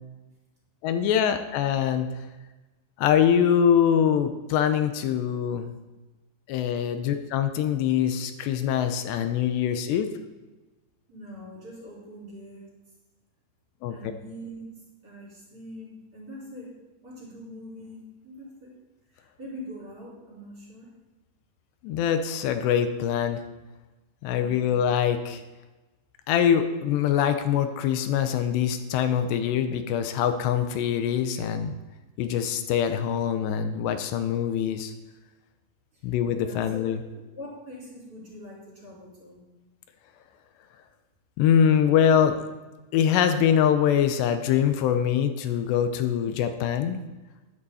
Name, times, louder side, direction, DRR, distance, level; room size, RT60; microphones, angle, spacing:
voice 1, 0.8-2.2 3.0-5.7 6.5-10.1 13.8-14.0 21.8-23.4 24.2-25.4 26.3-31.8 32.2-34.9 36.0-37.0 41.4-42.4 42.9-47.0, left 8 dB, 75° left, 8 dB, 2.7 m, -24 dB
voice 2, 11.1-12.7 13.9-14.7 15.0-16.7 17.0-18.7 19.1-20.9 24.3-24.8 35.9-36.1 36.3-39.4, equal, 20° right, -6 dB, 5.0 m, -43 dB
11.5 x 11.0 x 4.2 m, 1.1 s
omnidirectional pair, 5.5 m